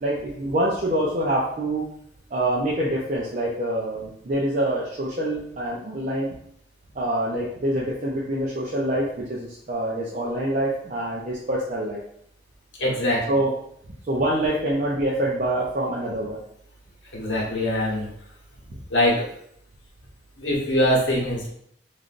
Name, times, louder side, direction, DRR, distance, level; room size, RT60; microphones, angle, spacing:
voice 1, 0.0-1.9 2.3-6.3 6.9-12.0 13.3-13.5 14.1-16.4, right 1 dB, 45° right, -5 dB, 0.5 m, -25 dB
voice 2, 12.8-13.2 17.1-18.1 18.9-19.3 20.4-21.5, left 1 dB, 85° left, -4 dB, 1.0 m, -22 dB
3.2 x 2.5 x 2.4 m, 0.69 s
head